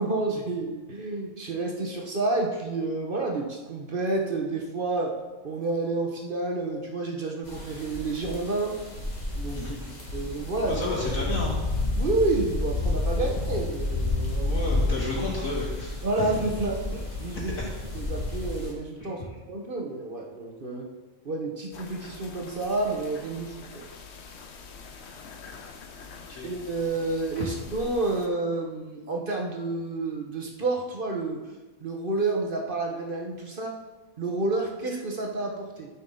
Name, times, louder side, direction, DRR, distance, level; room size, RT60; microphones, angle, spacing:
voice 1, 0.0-5.2 5.4-8.7 9.3-9.8 10.1-10.8 12.0-14.6 16.0-17.5 17.9-19.2 19.5-20.9 21.2-23.8 26.4-31.4 31.8-33.7 34.2-35.9, right 2 dB, 45° right, 1 dB, 1.2 m, -29 dB
sound 1, 7.4-18.7, left 2 dB, 30° left, 1.8 m, -30 dB
voice 2, 9.5-9.9 10.7-11.6 14.4-16.3 17.3-17.7 19.0-19.1 26.3-26.5 27.4-27.5, left 2 dB, 80° left, -4 dB, 2.7 m, -32 dB
sound 2, 21.7-28.3, left 4 dB, 55° left, 1.0 m, -45 dB
13.0 x 5.8 x 3.8 m, 1.2 s
omnidirectional pair, 1.4 m